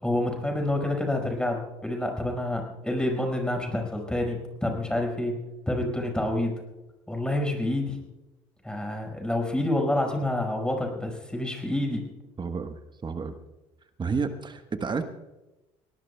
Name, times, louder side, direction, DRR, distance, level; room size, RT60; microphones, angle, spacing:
voice 1, 0.0-5.4 5.7-6.5 7.1-8.0 8.6-12.0, left 1 dB, 5° left, 2 dB, 5.4 m, -28 dB
voice 2, 12.4-13.3 14.0-15.0, right 5 dB, 30° right, 8 dB, 1.3 m, -31 dB
21.5 x 18.5 x 2.3 m, 1.0 s
hypercardioid pair, 60°, 16 cm